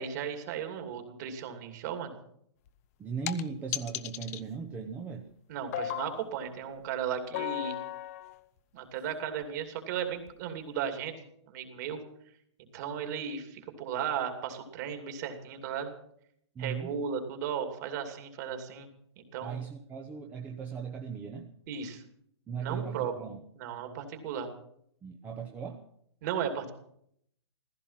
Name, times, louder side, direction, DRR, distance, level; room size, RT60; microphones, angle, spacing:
voice 1, 0.0-2.1 5.5-7.8 8.7-11.1 11.5-12.0 12.7-15.9 16.6-18.9 19.2-19.6 21.7-22.0 22.6-23.1 23.6-24.5 26.2-26.7, right 8 dB, 35° right, 6 dB, 2.7 m, -35 dB
sound 1, 2.7-2.8 3.3-3.4 3.7-4.4 5.7-6.2 7.3-8.4 9.4-9.5 10.3-10.4, left 14 dB, 30° left, 0.7 m, -35 dB
voice 2, 3.0-5.2 16.5-17.0 19.4-21.5 22.5-23.4 25.0-25.8, right 6 dB, 10° right, 1 dB, 0.8 m, -38 dB
15.5 x 14.5 x 5.8 m, 0.69 s
hypercardioid pair, 160°, 15 cm